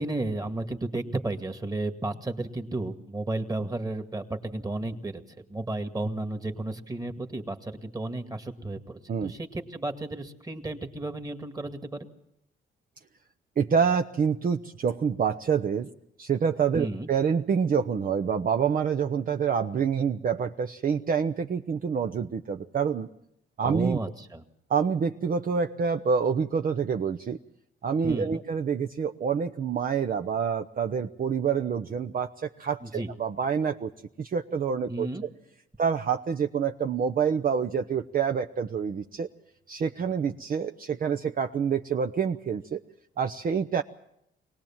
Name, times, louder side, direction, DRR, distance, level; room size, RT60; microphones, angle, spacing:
voice 1, 0.0-5.2 5.5-12.1 16.7-17.1 23.6-24.4 28.0-28.4 32.8-33.1 34.9-35.2, right 2 dB, 20° right, 6 dB, 2.1 m, -33 dB
voice 2, 13.6-15.9 16.2-23.1 23.6-24.0 24.7-27.4 27.8-33.9 34.2-35.3 35.8-39.3 39.7-42.8 43.2-43.8, right 6 dB, 45° right, 7 dB, 0.8 m, -27 dB
23.0 x 18.5 x 7.3 m, 0.79 s
cardioid pair, 90°, 20 cm